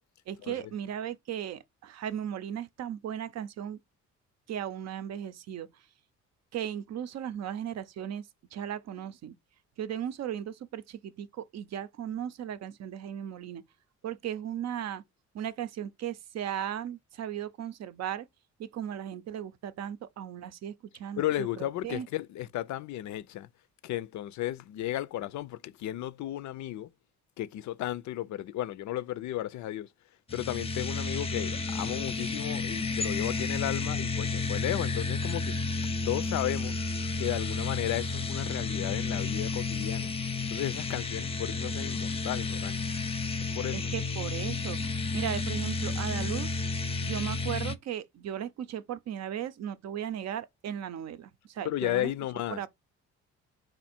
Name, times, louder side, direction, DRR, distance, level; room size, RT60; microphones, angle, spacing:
voice 1, 0.3-3.8 4.5-5.7 6.5-8.2 8.5-9.3 9.8-13.6 14.0-15.0 15.3-18.3 18.6-22.1 43.7-46.6 47.0-52.1 52.5-52.7, right 10 dB, 60° right, 0.6 m, -36 dB
voice 2, 21.2-23.5 23.8-26.9 27.4-29.9 30.3-35.6 36.0-36.8 37.2-40.1 40.5-42.9 43.5-43.8 51.6-52.6, left 13 dB, 70° left, 0.5 m, -34 dB
sound 1, 30.3-47.8, left 3 dB, 20° left, 0.6 m, -32 dB
4.3 x 2.6 x 4.3 m
cardioid pair, 90°, 30 cm